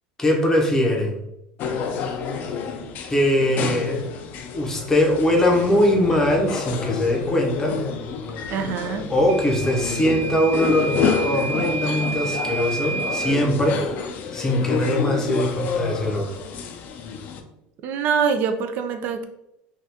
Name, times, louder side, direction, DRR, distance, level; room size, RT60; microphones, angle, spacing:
voice 1, 0.2-1.2 3.1-4.0 4.5-7.8 9.1-13.8 14.3-16.3, left 1 dB, 15° left, 1 dB, 0.7 m, -21 dB
sound 1, 1.6-17.4, left 6 dB, 50° left, 0.4 m, -29 dB
voice 2, 8.5-9.1 17.8-19.2, right 6 dB, 50° right, 8 dB, 0.4 m, -24 dB
Microwave oven / Alarm, 9.3-13.4, right 4 dB, 75° right, 1.0 m, -30 dB
2.7 x 2.3 x 3.4 m, 0.82 s
supercardioid pair, 130°, 4 cm